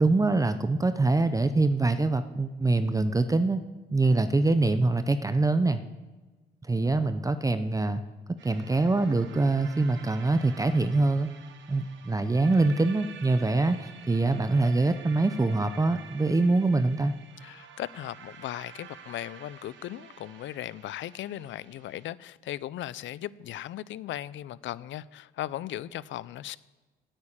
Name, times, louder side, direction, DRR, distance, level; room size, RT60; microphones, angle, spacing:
voice 1, 0.0-3.6 3.9-5.8 6.6-8.0 8.3-11.3 11.7-17.1, right 2 dB, 15° right, 0.6 m, -24 dB
sound 1, 8.4-22.1, right 7 dB, 70° right, 1.2 m, -49 dB
voice 2, 17.4-26.6, left 13 dB, 70° left, 0.5 m, -37 dB
9.6 x 8.9 x 8.7 m
cardioid pair, 90°, 20 cm